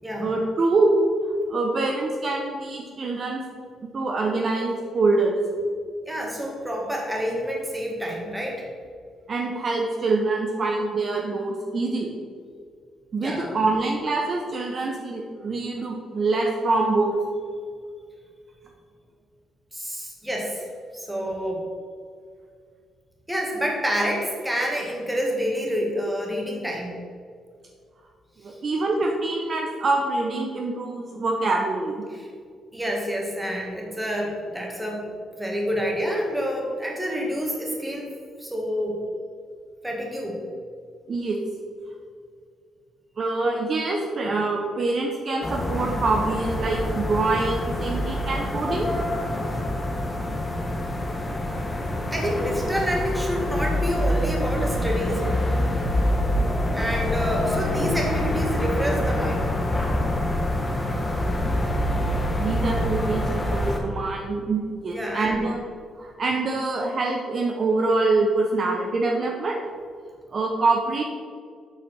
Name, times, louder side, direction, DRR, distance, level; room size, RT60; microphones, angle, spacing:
voice 1, 0.2-0.9 1.5-3.4 3.9-5.4 9.3-12.2 13.1-17.1 28.4-32.0 41.1-41.4 43.2-48.9 62.4-65.6 66.0-69.6 70.3-71.0, right 3 dB, 45° right, 1 dB, 0.8 m, -25 dB
voice 2, 6.0-8.6 13.2-13.6 19.7-20.7 20.9-21.6 23.3-26.9 28.5-28.6 32.1-32.3 32.7-38.1 38.4-39.0 39.8-40.4 52.1-55.3 56.7-59.5 64.9-65.6, equal, 10° right, -1 dB, 2.0 m, -28 dB
sound 1, 45.4-63.8, left 1 dB, 20° left, 1.3 m, -26 dB
8.1 x 4.2 x 6.0 m, 2.1 s
cardioid pair, 90°, 0 cm